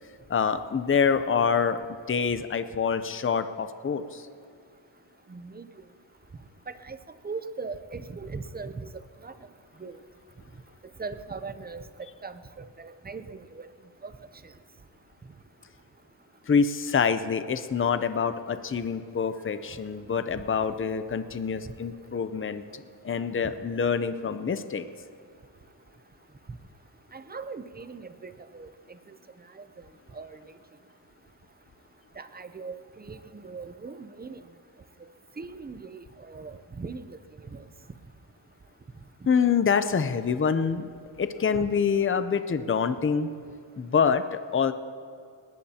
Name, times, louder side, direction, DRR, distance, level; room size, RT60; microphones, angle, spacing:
voice 1, 0.3-4.3 16.5-24.9 39.3-43.3 43.8-44.7, left 6 dB, 30° left, 11 dB, 0.5 m, -26 dB
voice 2, 5.3-5.7 6.7-7.0 7.2-8.9 9.2-9.3 9.8-9.9 11.0-11.8 12.2-13.7 14.0-14.1 27.1-29.2 29.5-29.6 30.1-30.4 32.2-34.4 35.4-37.2 37.5-37.6 41.5-41.7, right 4 dB, 20° right, 11 dB, 0.5 m, -39 dB
20.0 x 18.5 x 2.8 m, 2.4 s
wide cardioid pair, 145°, 46 cm